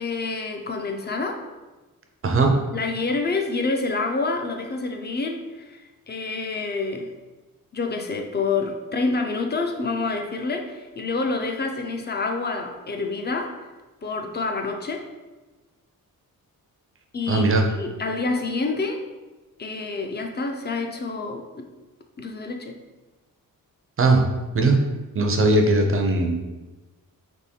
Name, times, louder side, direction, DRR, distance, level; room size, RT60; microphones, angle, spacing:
voice 1, 0.0-1.4 2.7-7.1 7.7-13.6 14.0-15.1 17.1-19.0 19.6-21.7 22.2-22.8, left 3 dB, 30° left, 4 dB, 0.4 m, -28 dB
voice 2, 2.2-2.6 17.3-17.6 24.0-24.2 24.5-24.8 25.1-26.4, right 2 dB, 40° right, 3 dB, 0.5 m, -19 dB
3.5 x 3.0 x 4.2 m, 1.2 s
wide cardioid pair, 170°, 36 cm